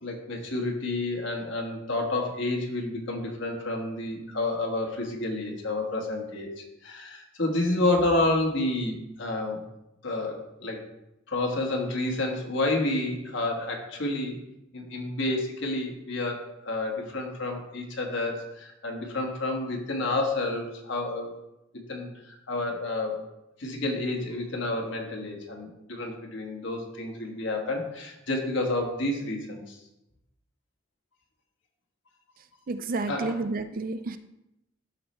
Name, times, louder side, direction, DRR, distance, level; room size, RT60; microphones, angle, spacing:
voice 1, 0.0-9.6 10.0-10.8 11.3-14.4 14.7-21.3 21.7-23.2 23.6-29.8 33.1-33.3, left 2 dB, 65° left, 1 dB, 1.5 m, -30 dB
voice 2, 32.7-34.2, right 3 dB, 45° right, 11 dB, 0.4 m, -30 dB
12.5 x 4.3 x 3.3 m, 0.89 s
head